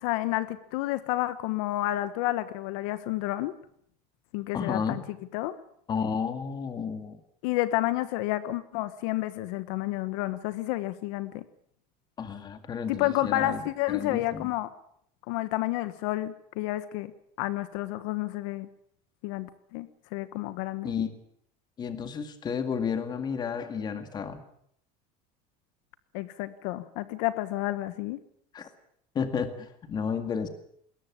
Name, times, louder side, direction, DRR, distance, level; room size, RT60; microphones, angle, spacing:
voice 1, 0.0-3.5 4.3-5.0 5.3-5.5 7.4-11.4 12.9-14.7 15.3-17.1 17.4-18.7 19.2-20.9 26.1-28.2, left 16 dB, 65° left, 13 dB, 1.3 m, -30 dB
voice 2, 4.5-5.0 5.9-7.2 12.2-13.6 13.9-14.5 20.8-21.1 21.8-24.4 28.5-28.7 29.1-30.5, left 6 dB, 25° left, 9 dB, 2.0 m, -32 dB
21.0 x 18.0 x 8.6 m, 0.69 s
cardioid pair, 170°, 18 cm